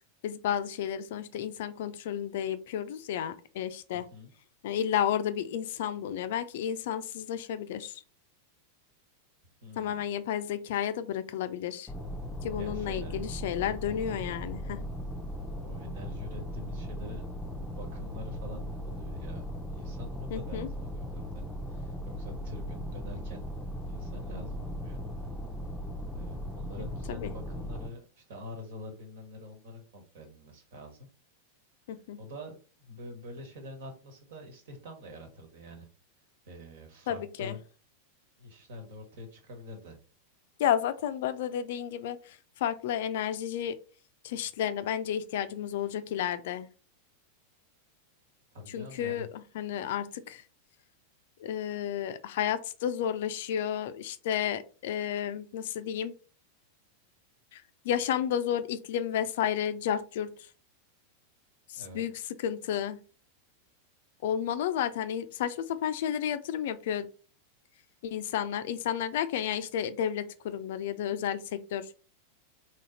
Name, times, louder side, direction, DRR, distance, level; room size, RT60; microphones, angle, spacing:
voice 1, 0.2-4.1 4.6-8.0 9.8-11.9 12.4-14.8 20.3-20.7 27.1-27.3 31.9-32.2 37.1-37.6 40.6-43.8 44.2-46.7 48.7-49.3 49.5-50.4 51.4-56.1 57.5-60.3 61.7-62.1 62.4-63.0 64.2-67.1 68.0-71.9, left 9 dB, 55° left, 11 dB, 0.4 m, -32 dB
voice 2, 3.9-4.3 9.6-10.1 12.6-13.2 15.6-17.2 17.5-19.5 19.7-21.4 21.7-23.5 23.9-25.0 26.1-31.1 32.2-35.9 36.5-37.6 38.4-40.0 48.5-49.3 61.7-62.2, left 1 dB, 55° right, 5 dB, 1.4 m, -46 dB
sound 1, 11.9-27.9, equal, 5° left, 0.7 m, -38 dB
4.1 x 3.1 x 3.9 m, 0.36 s
figure-of-eight pair, 90°, 0 cm